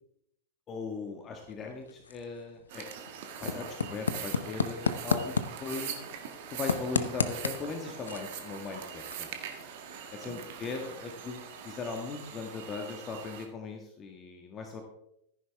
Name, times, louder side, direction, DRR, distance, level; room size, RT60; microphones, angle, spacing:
voice 1, 0.7-2.9 3.4-5.3 5.6-6.0 6.5-9.3 10.1-14.8, left 4 dB, 25° left, 3 dB, 1.6 m, -39 dB
sound 1, 1.3-13.0, left 5 dB, 70° left, 0.8 m, -37 dB
sound 2, 2.7-13.5, right 8 dB, 50° right, 1.7 m, -42 dB
14.5 x 10.5 x 3.5 m, 0.77 s
figure-of-eight pair, 90°, 0 cm